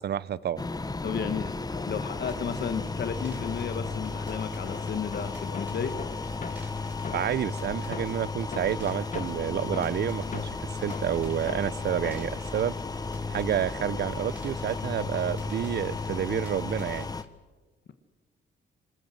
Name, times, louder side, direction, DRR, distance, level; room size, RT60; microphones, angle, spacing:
voice 1, 0.0-0.6 7.1-12.8 13.3-17.1, right 10 dB, 60° right, 0.7 m, -29 dB
sound 1, 0.6-17.2, left 3 dB, 20° left, 1.1 m, -34 dB
voice 2, 1.0-1.6 1.8-6.1, left 6 dB, 60° left, 1.7 m, -33 dB
sound 2, 1.7-2.6 3.0-7.5 7.9-12.4, left 5 dB, 40° left, 1.4 m, -42 dB
sound 3, 2.2-17.3, equal, 5° right, 5.8 m, -53 dB
27.0 x 21.0 x 7.8 m
cardioid pair, 100°, 19 cm